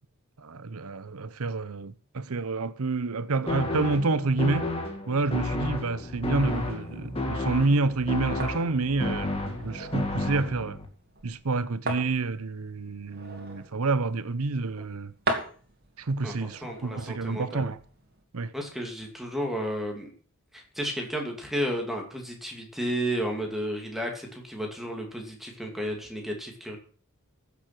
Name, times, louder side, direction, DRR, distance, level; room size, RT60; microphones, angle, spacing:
voice 1, 0.4-4.7 5.1-10.8 11.2-15.1 16.0-17.8 18.3-18.5, right 3 dB, 75° right, 0.8 m, -28 dB
sound 1, 3.5-10.9, left 2 dB, 25° left, 1.9 m, -32 dB
sound 2, 6.4-18.2, right 2 dB, 45° right, 2.5 m, -40 dB
voice 2, 16.2-17.7 18.5-20.1 20.5-26.8, equal, ahead, 2.5 m, -32 dB
15.0 x 7.1 x 6.0 m
head